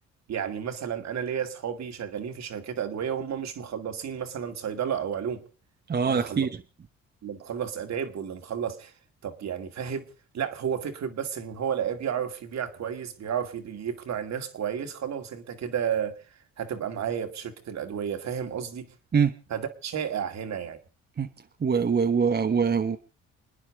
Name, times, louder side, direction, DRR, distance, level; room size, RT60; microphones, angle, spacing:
voice 1, 0.3-5.4 6.0-6.5 7.2-8.9 9.2-16.2 16.6-18.9 19.5-20.8, right 8 dB, 60° right, 7 dB, 2.3 m, -32 dB
voice 2, 5.9-6.5 19.1-19.3 21.2-21.3 21.6-23.0, right 6 dB, 35° right, 6 dB, 1.1 m, -23 dB
29.0 x 9.9 x 4.8 m, 0.37 s
cardioid pair, 90°, 30 cm